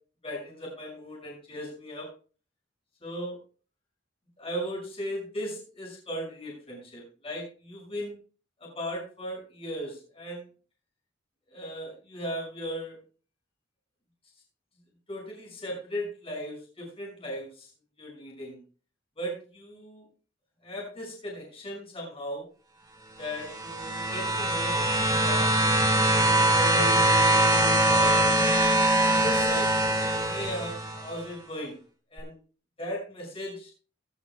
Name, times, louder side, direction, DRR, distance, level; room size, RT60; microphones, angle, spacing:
voice 1, 0.2-2.1 3.0-3.4 4.4-8.1 8.6-10.5 11.5-13.0 15.1-17.7 18.0-18.6 19.2-20.0 20.6-22.5 23.2-26.0 26.5-28.4 28.9-30.0 30.3-31.7 32.1-32.4 32.8-33.7, equal, 30° left, -1 dB, 6.1 m, -37 dB
sound 1, 23.4-31.1 32.2-32.3, right 1 dB, 20° right, 2.0 m, -23 dB
17.5 x 11.0 x 2.3 m, 0.38 s
head